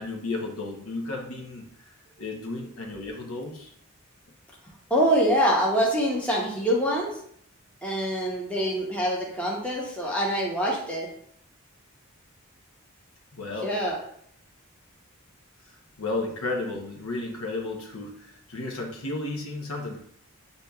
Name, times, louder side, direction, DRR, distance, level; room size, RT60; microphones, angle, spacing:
voice 1, 0.0-3.7 13.3-13.7 16.0-20.0, left 2 dB, 75° left, 1 dB, 0.9 m, -33 dB
voice 2, 4.9-7.1 7.8-11.1 13.6-14.0, equal, 5° left, -4 dB, 0.8 m, -25 dB
8.1 x 2.7 x 2.3 m, 0.66 s
head